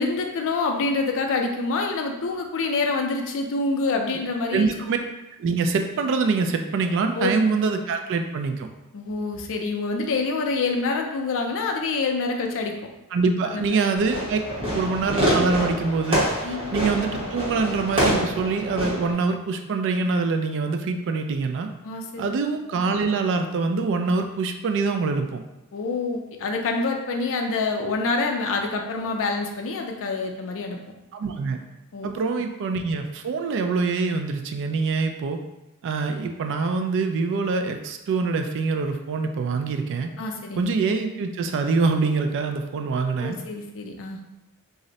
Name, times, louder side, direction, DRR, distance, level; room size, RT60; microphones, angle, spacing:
voice 1, 0.0-4.7 7.1-7.3 8.9-12.7 13.4-13.7 16.4-16.7 21.8-22.3 25.7-30.8 31.9-32.1 40.2-40.6 43.2-44.2, left 3 dB, 60° left, 3 dB, 0.4 m, -26 dB
voice 2, 4.5-5.0 5.4-8.7 13.1-14.4 14.7-21.7 22.2-25.4 31.1-31.6 32.0-35.4 35.8-40.1 40.6-43.4, right 4 dB, 55° right, 6 dB, 0.3 m, -24 dB
Fireworks, 14.0-19.1, equal, 25° right, 1.1 m, -26 dB
2.5 x 2.0 x 3.9 m, 0.99 s
head